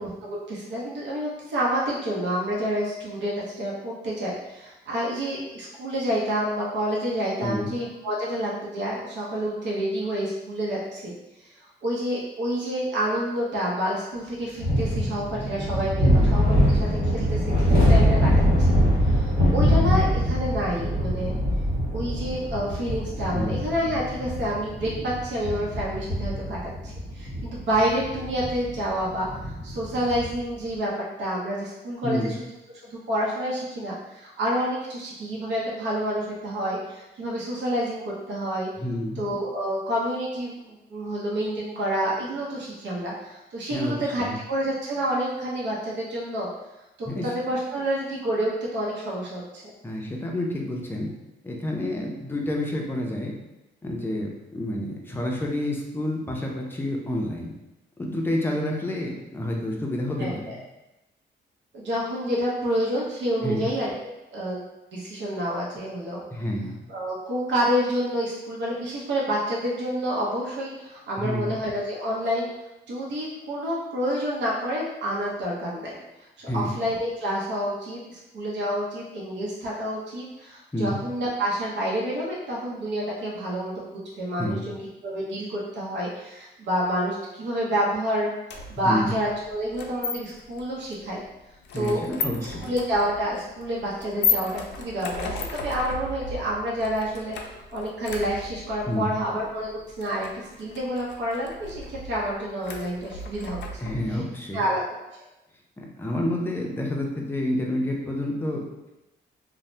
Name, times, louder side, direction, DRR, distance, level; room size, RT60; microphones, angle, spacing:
voice 1, 0.0-11.1 11.4-11.5 11.8-18.3 19.1-21.3 21.9-29.3 29.6-32.3 32.9-38.7 39.2-46.5 47.0-49.7 52.7-52.8 60.2-60.6 61.7-64.6 64.9-66.2 66.9-72.5 72.9-75.9 76.4-84.8 85.0-88.3 88.7-91.2 91.7-92.0 92.6-97.4 97.7-99.7 100.0-103.6 104.5-104.9, equal, 80° right, -4 dB, 0.7 m, -28 dB
voice 2, 7.4-7.7 16.0-16.3 23.3-23.5 32.0-32.3 38.8-39.2 43.7-44.3 47.1-47.3 49.8-51.1 51.4-53.3 53.8-57.5 58.0-60.6 63.4-63.7 66.3-66.7 71.2-71.5 76.5-76.8 80.7-81.0 84.4-84.6 88.8-89.1 91.7-92.7 98.9-99.1 103.8-104.6 105.8-108.7, left 1 dB, 10° left, -1 dB, 0.4 m, -29 dB
sound 1, 14.6-30.4, equal, 60° right, 1.5 m, -23 dB
sound 2, 88.5-104.2, left 5 dB, 80° left, 0.4 m, -35 dB
2.6 x 2.0 x 3.2 m, 0.95 s
wide cardioid pair, 165°, 18 cm